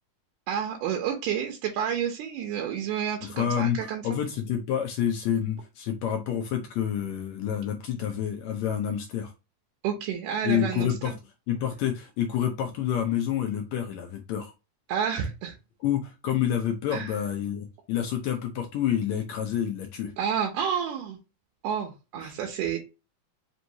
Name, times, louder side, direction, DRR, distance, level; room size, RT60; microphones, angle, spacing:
voice 1, 0.5-4.2 9.8-11.1 14.9-15.5 16.9-17.1 20.2-21.2 21.6-22.8, right 8 dB, 90° right, 2 dB, 2.3 m, -30 dB
voice 2, 3.2-9.3 10.4-11.1 11.5-14.5 15.8-20.1 22.2-22.3, left 9 dB, 75° left, 4 dB, 1.7 m, -28 dB
5.3 x 3.0 x 2.7 m, 0.26 s
omnidirectional pair, 3.6 m